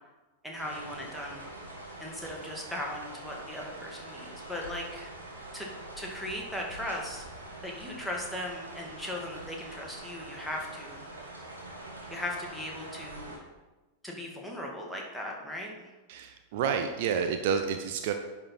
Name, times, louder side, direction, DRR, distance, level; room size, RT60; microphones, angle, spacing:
voice 1, 0.4-1.4 2.0-5.1 5.5-5.7 6.0-7.2 7.6-11.0 12.1-13.4 14.0-15.7, left 1 dB, ahead, -2 dB, 2.0 m, -38 dB
sound 1, 0.6-13.4, right 2 dB, 80° right, 2.1 m, -44 dB
voice 2, 16.1-18.1, right 7 dB, 50° right, 6 dB, 0.7 m, -29 dB
10.0 x 4.6 x 5.5 m, 1.2 s
figure-of-eight pair, 90°, 0 cm